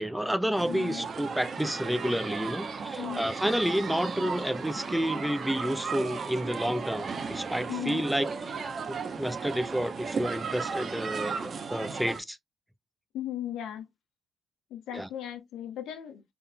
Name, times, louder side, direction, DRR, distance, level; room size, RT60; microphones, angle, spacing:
voice 1, 0.0-8.5 8.9-12.4 14.9-15.1, equal, 5° right, 0.4 m, -30 dB
sound 1, 0.6-12.2, right 5 dB, 45° right, 0.8 m, -35 dB
voice 2, 0.7-1.1 2.9-3.2 7.7-8.0 13.1-13.9 14.7-16.2, left 11 dB, 85° left, 1.0 m, -37 dB
4.2 x 3.6 x 2.3 m
cardioid pair, 90°, 0 cm